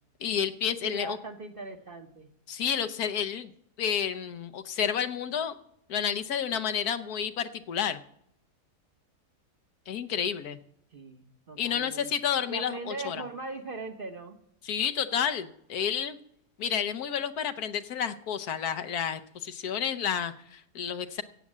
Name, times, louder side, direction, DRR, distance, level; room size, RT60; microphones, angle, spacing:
voice 1, 0.2-1.2 2.5-3.5 3.8-5.6 5.9-8.0 9.9-10.6 11.6-13.2 14.6-16.2 16.6-21.2, left 8 dB, 70° left, 10 dB, 1.4 m, -30 dB
voice 2, 0.8-2.3 10.9-12.1 12.5-14.4, right 3 dB, 35° right, 6 dB, 1.2 m, -40 dB
14.5 x 8.5 x 7.4 m, 0.72 s
omnidirectional pair, 1.7 m